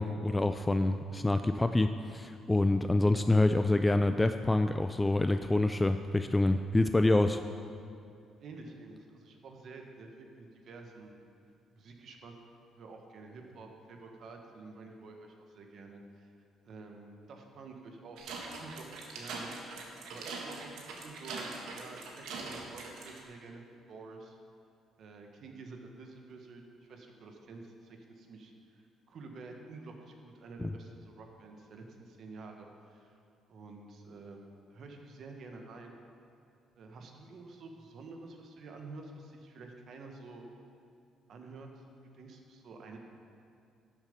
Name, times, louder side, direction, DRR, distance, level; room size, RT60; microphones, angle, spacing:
voice 1, 0.0-7.4 30.6-30.7, left 2 dB, 10° left, 8 dB, 0.3 m, -27 dB
voice 2, 8.4-11.1 11.7-12.3 12.7-16.3 16.6-18.2 18.6-19.5 20.0-24.4 25.0-26.6 26.9-33.1 33.5-35.9 36.8-40.4 41.3-41.8 42.1-43.0, right 3 dB, 55° right, 3 dB, 1.4 m, -49 dB
sound 1, 18.2-23.2, right 3 dB, 80° right, 1.6 m, -42 dB
12.5 x 7.3 x 5.2 m, 2.5 s
cardioid pair, 120°, 0 cm